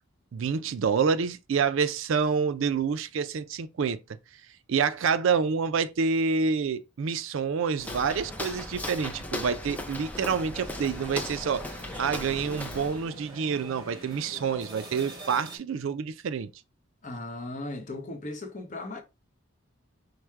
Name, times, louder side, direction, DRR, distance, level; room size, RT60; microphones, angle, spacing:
voice 1, 0.3-4.0 4.7-16.5, right 5 dB, 65° right, 0.4 m, -27 dB
Walk footsteps, 7.8-13.1, left 1 dB, 5° left, 0.4 m, -37 dB
sound 1, 10.5-15.6, right 1 dB, 20° right, 1.5 m, -44 dB
voice 2, 17.0-19.0, left 2 dB, 35° left, 0.8 m, -37 dB
4.8 x 2.1 x 4.5 m
head